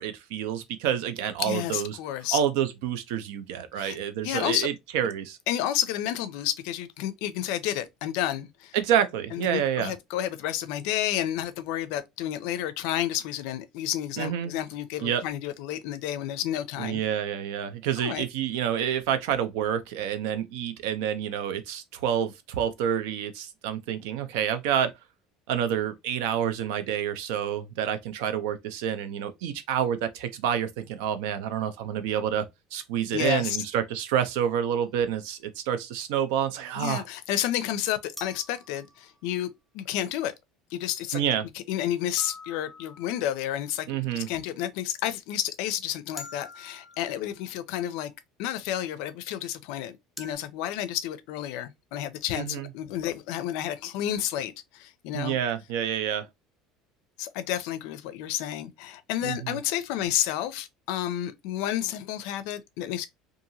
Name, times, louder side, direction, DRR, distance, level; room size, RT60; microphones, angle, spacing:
voice 1, 0.0-1.9 2.3-5.4 8.7-9.9 14.2-14.5 15.0-15.2 16.8-24.9 25.5-32.5 32.7-37.0 41.1-41.5 43.9-44.3 52.3-52.7 55.1-56.3 59.2-59.6, right 9 dB, 85° right, 0.5 m, -28 dB
voice 2, 1.4-2.4 3.8-4.0 4.2-4.7 5.5-8.7 9.3-17.0 18.0-18.2 33.1-33.6 36.8-39.5 39.7-40.3 40.7-41.2 41.5-43.9 44.1-48.1 48.4-55.4 57.2-63.1, left 12 dB, 70° left, 0.4 m, -31 dB
sound 1, 34.7-34.9 38.2-39.5 42.2-43.5 46.2-47.4 50.2-50.4, left 3 dB, 5° left, 0.4 m, -45 dB
2.8 x 2.5 x 2.6 m
cardioid pair, 170°, 0 cm